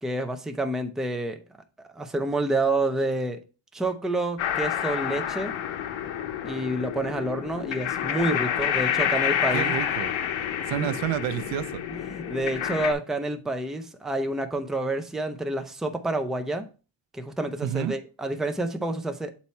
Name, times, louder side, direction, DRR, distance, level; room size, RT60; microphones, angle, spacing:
voice 1, 0.0-1.4 1.9-3.4 3.7-5.5 6.4-9.7 10.8-10.9 11.9-16.7 17.1-19.3, right 2 dB, ahead, 0.5 m, -28 dB
sound 1, 4.4-12.9, left 9 dB, 80° left, 0.9 m, -28 dB
voice 2, 9.5-10.1 10.6-11.8 17.6-18.0, right 11 dB, 80° right, 0.6 m, -29 dB
7.2 x 4.3 x 4.2 m
cardioid pair, 170°, 46 cm